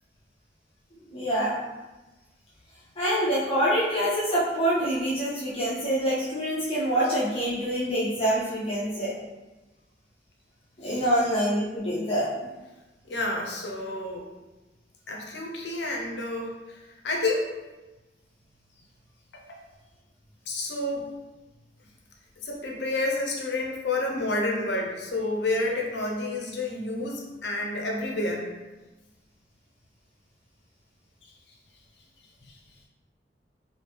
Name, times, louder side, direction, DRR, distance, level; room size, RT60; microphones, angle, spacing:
voice 1, 1.1-1.5 3.0-9.1 10.8-12.3, equal, 35° left, -9 dB, 0.8 m, -26 dB
voice 2, 13.1-14.2 15.1-16.8 17.0-17.5 19.3-19.6 20.5-21.1 22.4-28.5, left 2 dB, 80° left, 0 dB, 0.7 m, -29 dB
3.1 x 2.7 x 3.2 m, 1.1 s
head